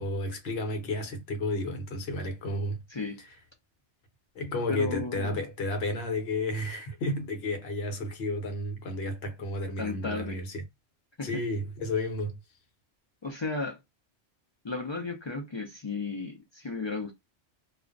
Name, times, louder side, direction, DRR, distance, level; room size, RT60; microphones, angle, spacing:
voice 1, 0.0-2.8 4.3-10.6 11.2-12.4, left 1 dB, 65° left, 1.0 m, -32 dB
voice 2, 2.9-3.2 4.7-5.4 9.8-10.4 11.2-11.4 13.2-13.8 14.6-17.1, left 3 dB, 45° left, 0.3 m, -34 dB
2.4 x 2.1 x 2.4 m
omnidirectional pair, 1.2 m